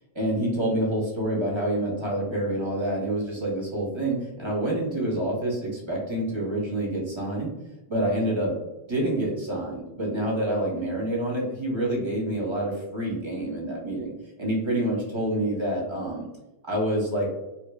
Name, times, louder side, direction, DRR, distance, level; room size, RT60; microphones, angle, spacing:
voice 1, 0.1-7.5 7.9-8.5 8.9-14.1 14.4-16.3 16.6-17.3, right 1 dB, 30° right, -3 dB, 0.8 m, -27 dB
2.8 x 2.5 x 2.3 m, 1.0 s
omnidirectional pair, 1.1 m